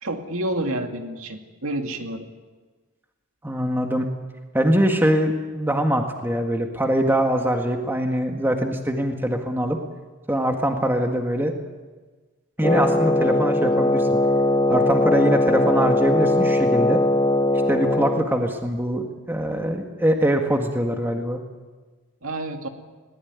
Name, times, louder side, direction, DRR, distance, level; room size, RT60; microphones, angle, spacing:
voice 1, 0.0-2.2 22.2-22.7, right 1 dB, 70° right, 4 dB, 2.4 m, -29 dB
voice 2, 3.4-4.1 4.5-9.8 10.3-11.5 12.6-14.2 14.7-17.0 17.7-21.4, equal, 10° right, 3 dB, 1.9 m, -23 dB
Wind instrument woodwind instrument, 12.6-18.3, left 1 dB, 20° left, 0.9 m, -20 dB
21.5 x 19.5 x 9.6 m, 1.3 s
head